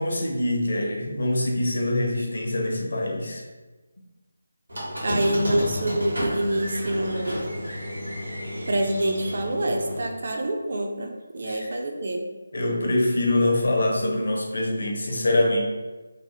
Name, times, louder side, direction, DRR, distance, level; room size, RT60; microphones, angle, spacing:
voice 1, 0.0-3.4 11.4-11.7 12.5-15.6, left 1 dB, 60° left, 0 dB, 0.6 m, -24 dB
Squeak, 4.7-10.1, equal, 80° right, 1.0 m, -31 dB
voice 2, 5.0-7.5 8.7-12.3, right 1 dB, 50° right, 3 dB, 0.4 m, -26 dB
2.7 x 2.1 x 3.0 m, 1.2 s
figure-of-eight pair, 155°, 0 cm